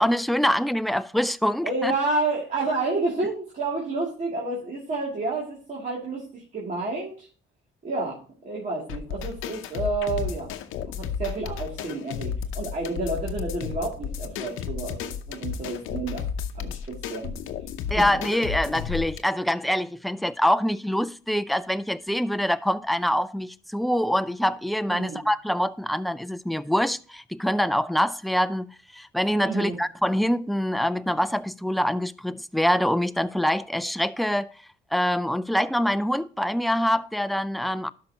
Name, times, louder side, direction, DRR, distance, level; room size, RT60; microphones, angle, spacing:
voice 1, 0.0-1.9 17.9-34.5 34.9-37.9, equal, ahead, 0.4 m, -25 dB
voice 2, 1.6-7.3 7.8-10.5 10.9-16.2 16.5-17.3 17.9-18.0 24.9-25.2 29.4-29.8, right 2 dB, 40° right, 2.5 m, -30 dB
sound 1, 8.9-19.2, left 7 dB, 90° left, 0.7 m, -33 dB
12.0 x 5.6 x 2.8 m
cardioid pair, 90°, 20 cm